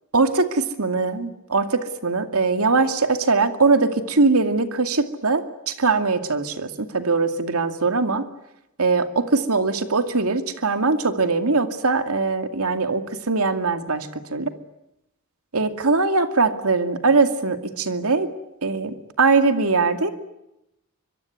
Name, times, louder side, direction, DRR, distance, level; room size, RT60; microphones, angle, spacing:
voice 1, 0.1-8.2 8.8-14.5 15.5-18.3 18.6-20.1, right 3 dB, 80° right, 8 dB, 2.3 m, -21 dB
25.0 x 22.5 x 9.6 m, 0.87 s
head